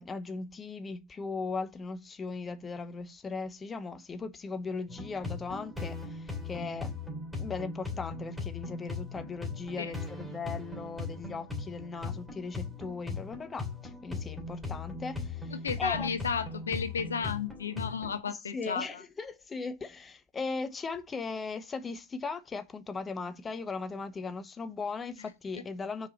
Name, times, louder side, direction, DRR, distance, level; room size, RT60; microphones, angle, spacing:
voice 1, 0.0-7.0 7.4-16.1 18.3-26.1, left 4 dB, 20° left, 0.9 m, -38 dB
sound 1, 4.9-18.2, left 3 dB, ahead, 2.5 m, -39 dB
voice 2, 15.5-19.0 25.2-25.3, left 6 dB, 80° left, 0.8 m, -33 dB
6.8 x 4.8 x 5.2 m
figure-of-eight pair, 95°, 0 cm